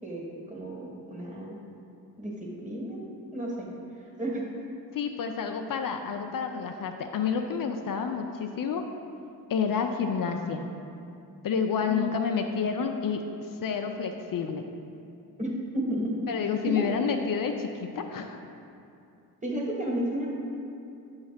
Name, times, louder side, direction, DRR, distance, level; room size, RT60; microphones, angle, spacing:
voice 1, 0.0-1.6 2.2-3.0 3.3-3.7 4.2-4.4 11.8-12.1 15.4-16.2 16.6-17.0 19.4-20.3, equal, 20° right, -3 dB, 1.5 m, -32 dB
voice 2, 4.9-8.9 9.5-10.7 11.4-13.2 13.6-14.6 16.3-18.4, left 6 dB, 60° left, 5 dB, 0.5 m, -29 dB
6.8 x 3.2 x 5.7 m, 2.7 s
cardioid pair, 70°, 38 cm